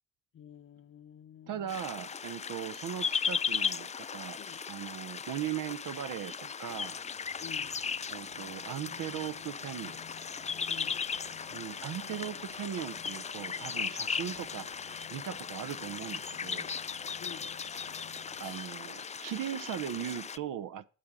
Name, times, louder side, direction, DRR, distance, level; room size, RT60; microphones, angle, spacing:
voice 1, 0.3-1.7 4.4-4.6 7.4-7.9 10.7-11.1 17.2-17.7, left 8 dB, 45° left, 0.7 m, -50 dB
voice 2, 1.5-4.4 4.7-7.0 8.1-10.0 11.5-14.7 15.1-16.7 18.4-20.8, right 10 dB, 70° right, 0.6 m, -39 dB
sound 1, 1.7-20.4, left 6 dB, 20° left, 0.3 m, -37 dB
sound 2, 1.9-20.2, left 1 dB, ahead, 0.7 m, -56 dB
sound 3, 6.7-20.2, left 8 dB, 85° left, 1.5 m, -54 dB
8.4 x 7.5 x 4.9 m
supercardioid pair, 65°, 33 cm